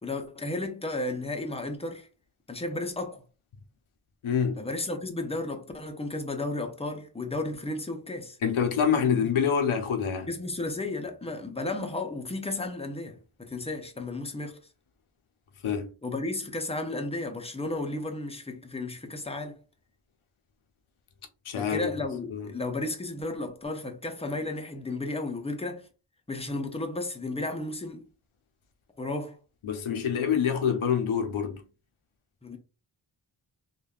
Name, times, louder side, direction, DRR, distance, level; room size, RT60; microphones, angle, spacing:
voice 1, 0.0-2.1 2.5-3.2 4.6-8.4 9.2-9.3 10.3-14.6 16.0-19.6 21.6-25.9 26.3-28.1 29.0-29.4 32.4-32.6, left 2 dB, 15° left, 0.5 m, -33 dB
voice 2, 4.2-4.6 8.4-10.3 15.6-15.9 21.5-21.9 22.3-22.5 29.6-31.6, left 7 dB, 90° left, 0.6 m, -26 dB
3.4 x 2.3 x 2.3 m
wide cardioid pair, 75°, 48 cm